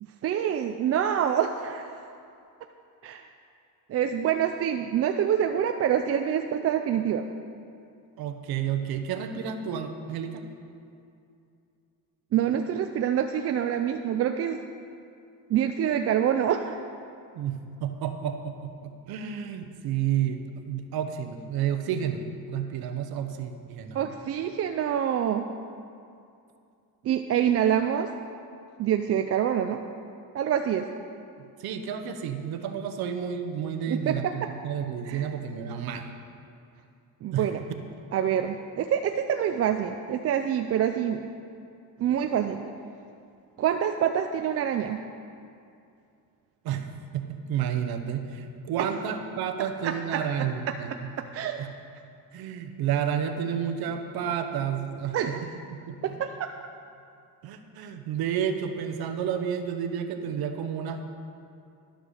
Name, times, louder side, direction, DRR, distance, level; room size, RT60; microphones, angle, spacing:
voice 1, 0.2-1.9 3.0-3.2 3.9-7.3 12.3-14.6 15.5-16.8 23.9-25.5 27.0-28.1 28.8-29.8 30.3-30.9 33.9-34.5 35.1-35.2 37.2-37.6 38.1-41.2 42.0-42.6 43.6-45.0 48.8-48.9 49.8-50.2 51.3-51.6 55.1-55.4 56.0-56.5, right 9 dB, 40° right, 6 dB, 0.4 m, -26 dB
voice 2, 8.2-10.4 17.3-22.2 22.5-24.1 31.6-36.1 37.3-37.5 46.6-51.1 51.6-51.7 52.3-56.2 57.4-61.1, right 8 dB, 75° right, 7 dB, 1.0 m, -31 dB
11.5 x 7.9 x 6.4 m, 2.5 s
cardioid pair, 160°, 37 cm